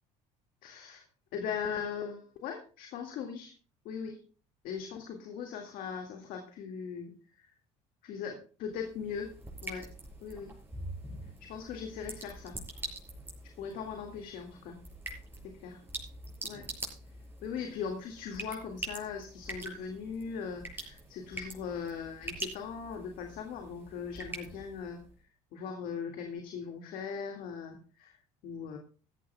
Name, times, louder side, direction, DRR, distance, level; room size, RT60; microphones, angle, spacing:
voice 1, 0.6-1.0 1.3-3.5 3.9-4.2 4.6-7.5 8.0-9.3 9.6-9.9 10.2-10.5 11.4-12.6 13.6-14.8 15.4-15.8 16.4-16.6 17.4-25.0 25.5-28.8, left 6 dB, 70° left, 3 dB, 2.0 m, -39 dB
sound 1, 8.7-25.1, right 2 dB, 15° right, 5.9 m, -45 dB
16.5 x 14.5 x 2.3 m, 0.37 s
supercardioid pair, 100°, 15 cm